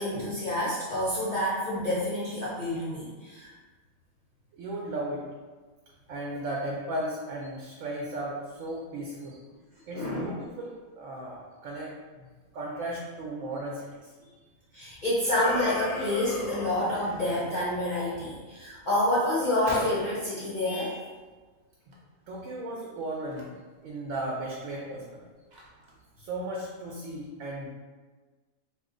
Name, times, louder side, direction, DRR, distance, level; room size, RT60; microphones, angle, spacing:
voice 1, 0.0-3.5 9.9-10.2 14.7-21.1, left 1 dB, 50° left, -8 dB, 0.6 m, -28 dB
voice 2, 4.5-5.2 6.1-9.4 9.8-12.3 12.5-14.1 22.3-23.5 23.8-25.2 26.2-27.7, right 1 dB, 75° right, -3 dB, 0.9 m, -36 dB
sound 1, 15.4-17.5, left 3 dB, 90° left, 1.0 m, -36 dB
Gunshot gunfire, 19.7-21.3 21.6-22.0 22.2-22.4 23.2-23.4 24.0-24.1 24.5-26.1, equal, 50° right, 0.5 m, -41 dB
2.9 x 2.2 x 3.7 m, 1.3 s
omnidirectional pair, 1.4 m